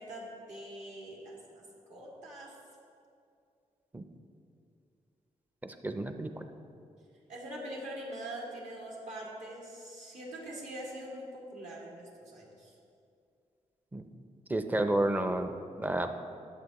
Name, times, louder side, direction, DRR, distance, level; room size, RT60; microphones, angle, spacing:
voice 1, 0.0-1.6 1.9-2.5 7.3-12.7, right 1 dB, 70° right, -4 dB, 2.2 m, -43 dB
voice 2, 5.6-6.4 13.9-14.1 14.5-16.1, right 1 dB, 15° right, 7 dB, 0.5 m, -31 dB
11.5 x 7.4 x 3.0 m, 2.5 s
cardioid pair, 115°, 13 cm